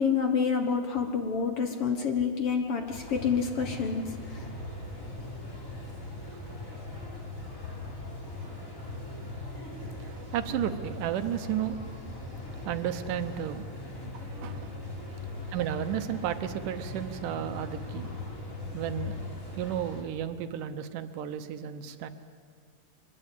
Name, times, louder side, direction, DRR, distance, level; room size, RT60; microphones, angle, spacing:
voice 1, 0.0-4.0, left 6 dB, 55° left, 5 dB, 1.8 m, -28 dB
sound 1, 2.9-20.0, left 2 dB, 25° left, 3.8 m, -40 dB
voice 2, 9.8-11.8 12.5-13.7 14.0-15.1 15.5-18.2 18.7-19.2 19.6-22.1, right 10 dB, 75° right, 10 dB, 2.4 m, -33 dB
23.5 x 21.0 x 8.3 m, 2.1 s
omnidirectional pair, 3.8 m